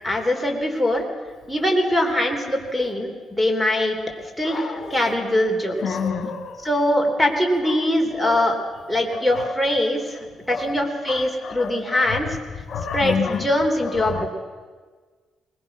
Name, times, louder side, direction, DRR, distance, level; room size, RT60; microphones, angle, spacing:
voice 1, 0.0-1.0 1.5-4.0 4.4-6.0 6.6-8.6 8.9-10.2 10.5-12.4 12.9-14.3, left 1 dB, ahead, 4 dB, 3.5 m, -22 dB
voice 2, 4.4-5.1 5.8-6.7 8.2-8.4 9.1-9.5 10.5-10.7 11.1-12.2 12.7-13.4 13.8-14.3, left 6 dB, 60° left, 5 dB, 1.7 m, -29 dB
21.0 x 20.5 x 6.2 m, 1.5 s
cardioid pair, 90°, 0 cm